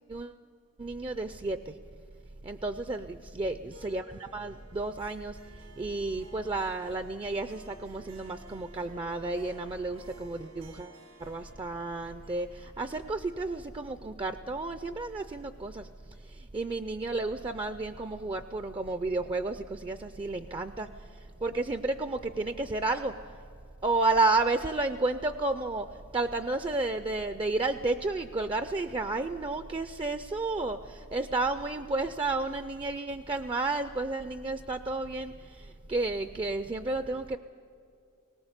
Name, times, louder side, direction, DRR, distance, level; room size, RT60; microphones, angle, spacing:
voice 1, 0.8-1.8 2.4-5.4 5.8-10.9 11.2-15.9 16.2-20.9 21.4-23.1 23.8-25.9 26.1-37.4, right 3 dB, 20° right, 10 dB, 0.4 m, -32 dB
Harp, 3.7-14.3, right 1 dB, 90° right, 3.4 m, -54 dB
19.0 x 18.5 x 8.1 m, 2.5 s
head